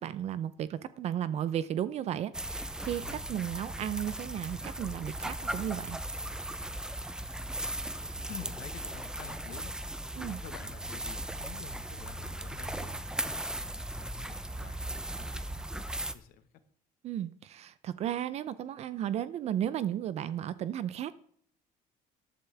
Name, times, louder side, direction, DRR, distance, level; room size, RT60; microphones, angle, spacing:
voice 1, 0.0-6.0 10.2-10.4 17.0-21.1, right 10 dB, 45° right, 15 dB, 0.6 m, -34 dB
sound 1, 2.3-16.1, right 1 dB, 5° right, 0.6 m, -37 dB
voice 2, 7.5-9.7 10.2-15.9 16.1-16.6, left 10 dB, 75° left, 10 dB, 1.4 m, -50 dB
14.5 x 11.5 x 3.4 m, 0.63 s
cardioid pair, 155°, 15 cm